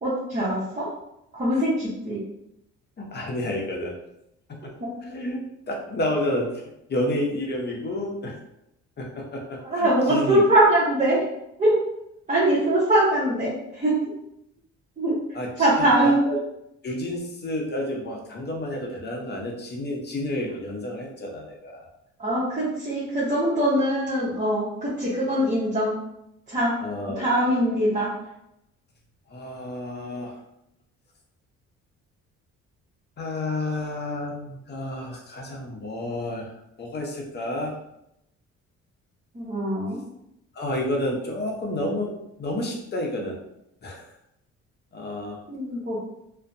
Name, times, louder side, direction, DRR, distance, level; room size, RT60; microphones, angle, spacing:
voice 1, 0.0-0.9 1.3-2.2 3.7-3.8 4.8-4.9 9.6-11.2 11.6-11.8 12.3-13.9 15.0-15.1 15.6-16.2 22.2-26.0 26.5-26.8 27.2-28.1 39.3-40.0 45.5-46.0, right 1 dB, 25° right, -8 dB, 0.8 m, -22 dB
voice 2, 3.0-4.0 4.5-4.7 5.0-5.4 5.7-8.4 9.0-10.4 15.3-16.4 16.8-21.9 26.8-27.3 29.3-30.4 33.2-36.5 36.8-37.8 40.5-43.4 43.8-44.1 44.9-45.4, left 1 dB, 35° left, 0 dB, 0.7 m, -30 dB
2.6 x 2.1 x 2.5 m, 0.81 s
cardioid pair, 90°, 30 cm